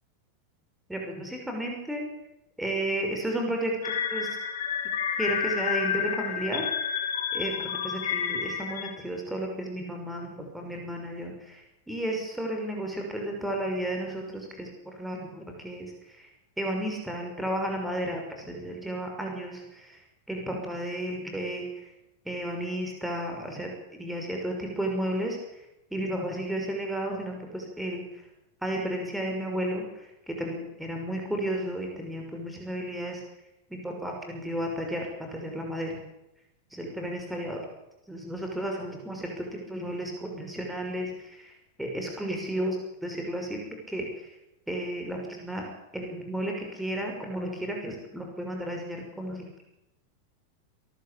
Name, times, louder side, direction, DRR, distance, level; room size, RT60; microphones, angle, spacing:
voice 1, 0.9-2.0 2.6-4.3 5.2-7.0 7.3-11.6 11.9-15.9 16.2-16.3 16.6-20.0 20.3-21.6 22.3-25.4 25.9-28.0 28.6-33.2 33.7-35.1 35.3-36.0 36.7-37.6 38.1-41.5 41.8-43.6 43.9-44.3 44.7-45.7 45.9-49.6, right 1 dB, 5° right, 1 dB, 6.1 m, -33 dB
sound 1, 3.8-8.9, left 7 dB, 70° left, 3.0 m, -30 dB
27.5 x 13.5 x 8.7 m, 0.89 s
figure-of-eight pair, 90°, 0 cm